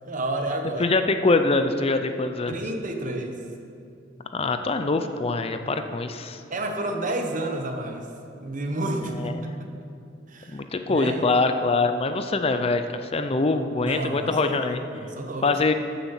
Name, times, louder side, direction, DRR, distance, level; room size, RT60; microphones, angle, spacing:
voice 1, 0.1-0.8 2.5-3.4 6.5-8.1 8.4-9.7 10.3-10.6 10.9-11.2 13.9-15.5, right 1 dB, 45° right, 4 dB, 1.1 m, -30 dB
voice 2, 0.8-2.6 4.3-6.4 9.1-9.5 10.5-14.8 15.4-15.7, left 3 dB, 30° left, 8 dB, 0.5 m, -24 dB
12.0 x 7.1 x 7.3 m, 2.5 s
head